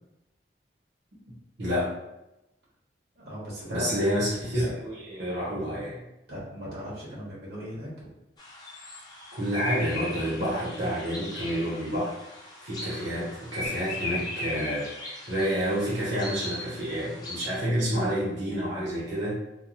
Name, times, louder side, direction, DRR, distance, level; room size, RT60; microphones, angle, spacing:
voice 1, 1.6-1.9 3.7-6.0 9.4-12.1 12.6-19.4, equal, 85° right, -7 dB, 0.9 m, -29 dB
voice 2, 3.1-4.2 6.3-8.1, equal, 60° right, -6 dB, 1.1 m, -37 dB
sound 1, 8.4-17.5, left 2 dB, 25° left, 0.5 m, -38 dB
2.8 x 2.3 x 2.5 m, 0.91 s
head